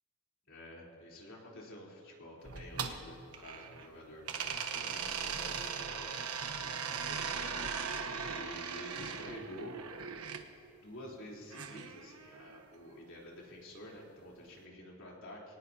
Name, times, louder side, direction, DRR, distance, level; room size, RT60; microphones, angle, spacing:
voice 1, 0.5-6.3 6.6-7.9 8.2-9.8 10.8-15.6, left 1 dB, 60° left, -3 dB, 3.8 m, -49 dB
sound 1, 2.5-3.9 4.3-10.4 11.5-12.6, right 6 dB, 80° right, 1.2 m, -39 dB
24.5 x 18.5 x 2.9 m, 2.5 s
head